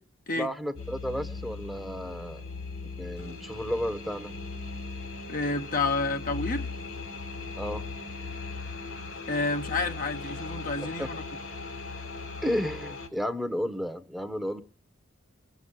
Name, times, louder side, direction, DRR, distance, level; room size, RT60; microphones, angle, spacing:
voice 1, 0.4-2.4 2.9-4.3 7.6-7.8 11.0-11.1 12.4-14.6, equal, ahead, 1.1 m, -32 dB
sound 1, 0.8-13.1, left 3 dB, 85° left, 4.5 m, -38 dB
voice 2, 5.3-6.7 9.3-11.2, left 3 dB, 40° left, 1.1 m, -29 dB
22.5 x 8.2 x 7.5 m
head